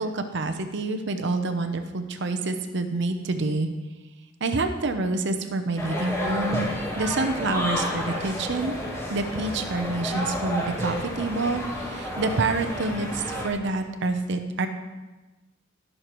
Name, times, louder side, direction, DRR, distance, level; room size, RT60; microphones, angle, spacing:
voice 1, 0.0-3.7 4.4-6.7 7.0-8.7 9.1-14.7, right 3 dB, 60° right, 7 dB, 0.7 m, -27 dB
sound 1, 5.8-13.5, left 1 dB, 15° left, 1.4 m, -31 dB
17.5 x 6.5 x 3.1 m, 1.2 s
head